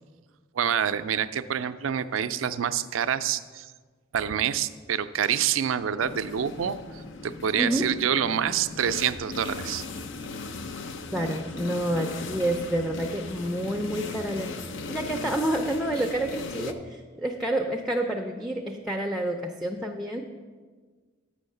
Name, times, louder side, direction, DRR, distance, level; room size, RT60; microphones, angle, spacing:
voice 1, 0.5-3.7 4.1-9.9, right 8 dB, 80° right, 12 dB, 0.4 m, -27 dB
sound 1, 6.0-16.7, left 3 dB, 65° left, 0.5 m, -38 dB
voice 2, 11.1-20.2, right 1 dB, ahead, 3 dB, 0.5 m, -29 dB
7.7 x 6.3 x 6.6 m, 1.5 s
head